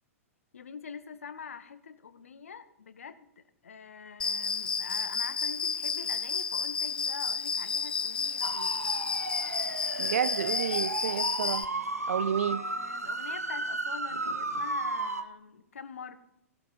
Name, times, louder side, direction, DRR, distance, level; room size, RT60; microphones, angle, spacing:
voice 1, 0.5-8.8 12.5-16.2, left 6 dB, 65° left, 1.4 m, -45 dB
Cricket, 4.2-11.6, left 5 dB, 10° left, 0.7 m, -31 dB
sound 1, 8.4-15.2, right 2 dB, 80° right, 1.4 m, -34 dB
voice 2, 10.0-11.7 12.1-12.7, right 8 dB, 60° right, 0.6 m, -30 dB
17.0 x 11.5 x 5.5 m
figure-of-eight pair, 105°, 8 cm